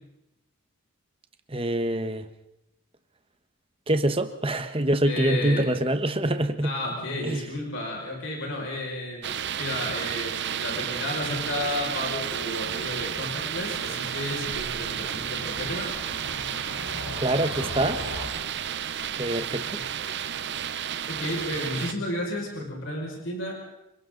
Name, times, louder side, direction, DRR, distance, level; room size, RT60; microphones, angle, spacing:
voice 1, 1.5-2.3 3.9-6.7 7.2-7.4 17.2-18.0 19.2-19.8, right 1 dB, 25° right, 1.3 m, -25 dB
voice 2, 5.0-5.7 6.6-15.9 19.7-19.8 21.1-23.5, left 1 dB, 60° left, 6.0 m, -32 dB
sound 1, 9.2-21.9, right 9 dB, 50° right, 0.7 m, -32 dB
Cricket / Motor vehicle (road), 11.2-18.3, left 1 dB, 85° left, 3.9 m, -41 dB
28.0 x 25.0 x 4.0 m
head